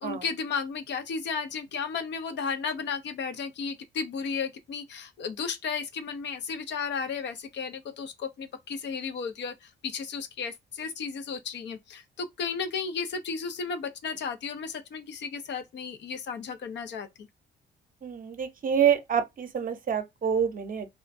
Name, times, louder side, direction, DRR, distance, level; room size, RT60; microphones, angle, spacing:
voice 1, 0.0-17.3, left 5 dB, 65° left, 0.6 m, -34 dB
voice 2, 18.0-20.9, right 8 dB, 45° right, 0.7 m, -27 dB
3.6 x 2.2 x 2.6 m
cardioid pair, 90°, 20 cm